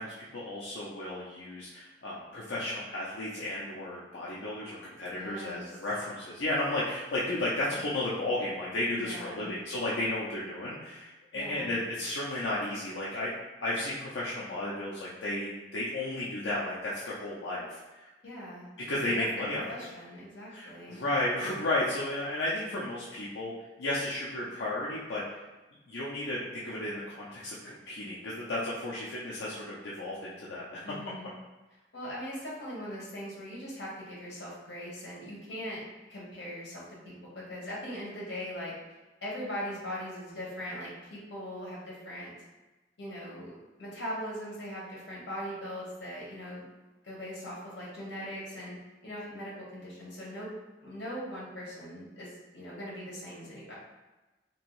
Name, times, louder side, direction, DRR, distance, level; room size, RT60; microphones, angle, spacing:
voice 1, 0.0-13.3 13.6-18.1 18.9-19.6 20.5-23.5 23.8-25.2 25.9-30.9, left 1 dB, 85° left, -7 dB, 0.6 m, -33 dB
voice 2, 5.1-5.8 9.0-9.6 11.3-11.8 18.2-18.7 19.1-19.2 19.5-21.0 30.8-31.3 31.9-35.8 36.1-42.3 43.0-46.7 47.0-50.5 50.8-53.8, equal, 65° left, -6 dB, 1.1 m, -40 dB
3.0 x 2.6 x 3.0 m, 1.1 s
head